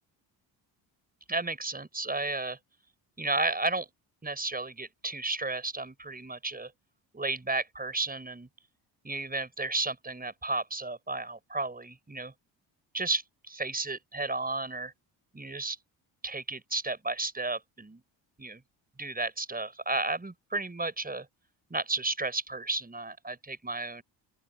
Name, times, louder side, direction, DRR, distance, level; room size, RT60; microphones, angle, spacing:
voice 1, 1.3-2.6 3.2-3.9 4.2-6.7 7.1-8.5 9.0-12.3 12.9-14.9 15.3-15.8 16.2-18.0 18.4-18.6 19.0-21.3 21.7-24.0, right 3 dB, 20° right, 6.5 m, -33 dB
open air
supercardioid pair, 70°, 47 cm